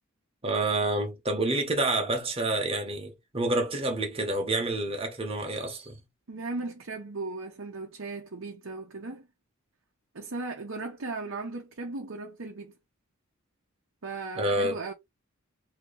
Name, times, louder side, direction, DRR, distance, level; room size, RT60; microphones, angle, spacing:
voice 1, 0.4-6.0 14.3-14.8, right 2 dB, 25° right, 1.0 m, -28 dB
voice 2, 6.3-9.3 10.1-12.7 14.0-14.9, right 3 dB, 65° right, 0.8 m, -37 dB
2.9 x 2.8 x 3.9 m
head